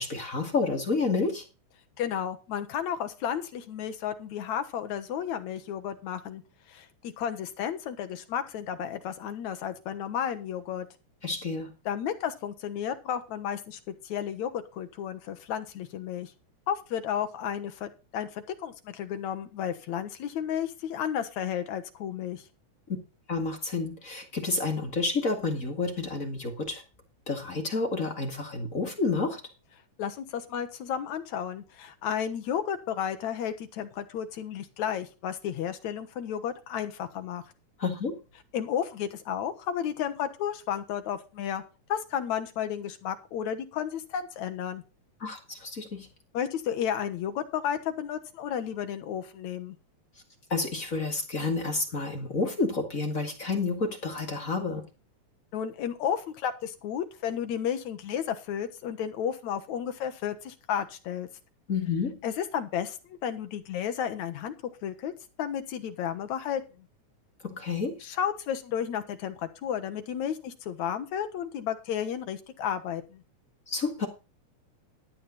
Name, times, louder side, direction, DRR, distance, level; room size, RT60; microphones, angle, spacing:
voice 1, 0.0-1.4 11.2-11.7 22.9-23.0 23.3-26.8 27.3-29.4 37.8-38.2 45.2-46.1 50.5-54.8 61.7-62.2 67.4-68.0 73.7-74.1, left 3 dB, 30° left, 3 dB, 2.2 m, -30 dB
voice 2, 2.0-6.4 6.7-10.9 11.9-16.3 16.7-22.4 30.0-37.4 38.5-41.6 41.9-44.8 46.3-49.8 55.5-61.3 62.2-64.5 64.8-65.1 65.4-66.6 68.0-73.2, left 9 dB, 70° left, 9 dB, 2.6 m, -32 dB
13.5 x 8.7 x 4.1 m, 0.30 s
omnidirectional pair, 3.6 m